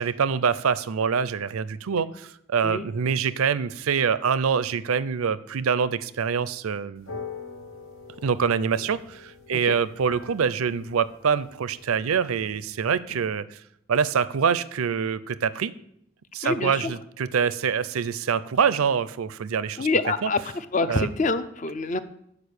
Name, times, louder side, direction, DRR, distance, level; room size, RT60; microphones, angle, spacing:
voice 1, 0.0-2.1 2.5-7.1 8.2-13.6 13.9-15.7 16.3-19.9 20.2-20.3 20.9-21.1, right 6 dB, 85° right, 17 dB, 0.5 m, -25 dB
sound 1, 7.0-13.0, left 5 dB, 75° left, 1.1 m, -44 dB
voice 2, 16.4-16.9 19.8-22.0, left 3 dB, 35° left, 12 dB, 0.5 m, -26 dB
8.8 x 4.9 x 6.5 m, 0.74 s
head